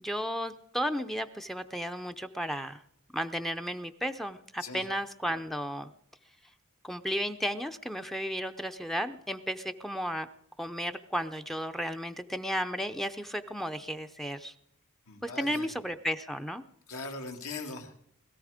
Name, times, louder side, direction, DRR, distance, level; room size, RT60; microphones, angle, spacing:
voice 1, 0.0-2.8 3.1-5.9 6.8-10.3 10.6-14.5 15.2-16.6, equal, ahead, 10 dB, 0.5 m, -34 dB
voice 2, 15.1-15.7 16.9-17.9, left 3 dB, 80° left, 3 dB, 2.3 m, -40 dB
21.0 x 14.0 x 5.0 m, 0.74 s
head